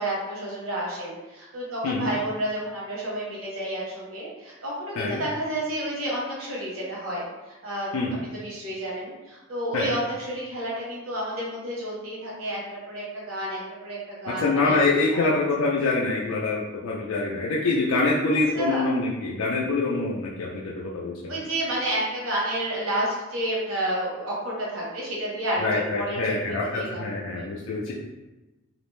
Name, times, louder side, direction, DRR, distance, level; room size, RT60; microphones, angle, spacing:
voice 1, 0.0-7.9 8.4-14.8 15.1-15.3 18.3-18.9 21.3-27.5, right 1 dB, 75° right, -5 dB, 0.9 m, -30 dB
voice 2, 14.4-21.3 25.6-27.9, left 3 dB, 80° left, -4 dB, 0.4 m, -25 dB
2.5 x 2.1 x 3.0 m, 1.1 s
head